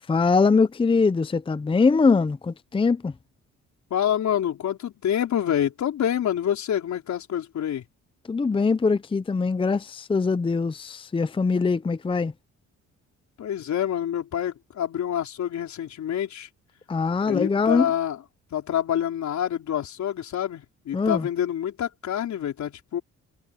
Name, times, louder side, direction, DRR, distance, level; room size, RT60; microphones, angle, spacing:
voice 1, 0.1-3.1 8.3-12.3 16.9-17.9 20.9-21.3, left 4 dB, 15° left, 0.6 m, -22 dB
voice 2, 3.9-7.8 13.4-16.5 17.2-18.2 18.5-23.0, left 10 dB, 65° left, 4.5 m, -27 dB
cardioid pair, 90°, 30 cm